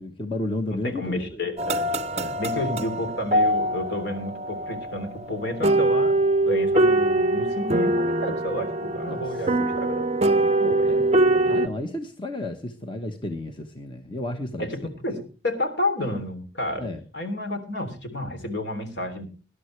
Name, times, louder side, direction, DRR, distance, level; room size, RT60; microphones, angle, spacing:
voice 1, 0.0-1.4 2.2-2.4 9.1-9.5 10.8-11.1 11.5-14.9 16.8-17.0, left 1 dB, 25° left, 5 dB, 1.1 m, -32 dB
voice 2, 0.7-1.9 2.4-6.1 6.5-10.1 10.6-11.0 11.3-11.7 14.6-19.3, left 1 dB, 65° left, 6 dB, 3.2 m, -31 dB
sound 1, 1.6-11.7, right 2 dB, 35° right, 0.6 m, -23 dB
20.0 x 11.5 x 3.2 m, 0.34 s
head